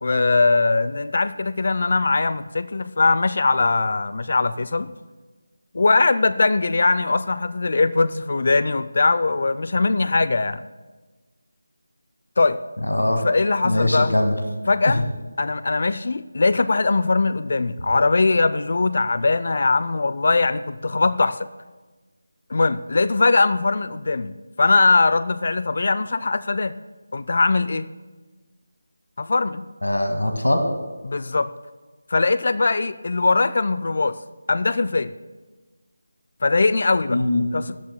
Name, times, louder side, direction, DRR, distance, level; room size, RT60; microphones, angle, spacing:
voice 1, 0.0-4.9 5.7-10.6 12.4-12.6 13.2-14.1 14.7-15.0 15.4-21.5 22.5-26.7 27.1-27.9 29.2-29.6 31.0-31.5 32.1-34.2 34.5-35.1 36.4-37.2 37.5-37.8, left 3 dB, 50° left, 15 dB, 0.4 m, -21 dB
voice 2, 12.9-13.2 13.6-14.3 29.8-30.6 37.1-37.4, left 1 dB, 80° left, 5 dB, 1.9 m, -21 dB
20.5 x 14.0 x 2.2 m, 1.3 s
figure-of-eight pair, 160°, 0 cm